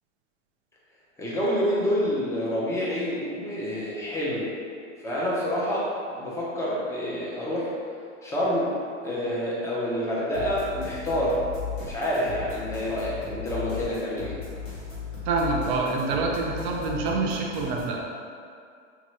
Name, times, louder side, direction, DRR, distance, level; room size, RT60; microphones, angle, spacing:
voice 1, 1.2-4.6 5.0-7.7 8.2-8.8 9.0-11.4 11.8-14.4, equal, 10° left, -7 dB, 0.7 m, -28 dB
sound 1, 10.3-18.0, left 5 dB, 90° left, 1.5 m, -37 dB
voice 2, 15.3-18.0, right 3 dB, 40° right, 0 dB, 0.6 m, -26 dB
3.5 x 2.8 x 3.1 m, 2.3 s
hypercardioid pair, 115°, 37 cm